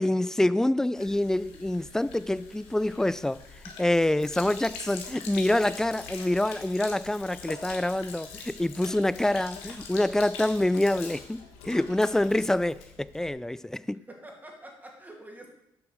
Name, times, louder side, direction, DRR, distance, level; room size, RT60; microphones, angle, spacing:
voice 1, 0.0-3.4 3.8-11.4 11.6-14.0, left 1 dB, 5° left, 0.3 m, -26 dB
Sink (filling or washing), 1.0-13.3, left 5 dB, 85° left, 1.4 m, -44 dB
voice 2, 14.1-15.5, right 1 dB, 15° right, 2.5 m, -46 dB
7.3 x 5.9 x 6.4 m
supercardioid pair, 65°, 10 cm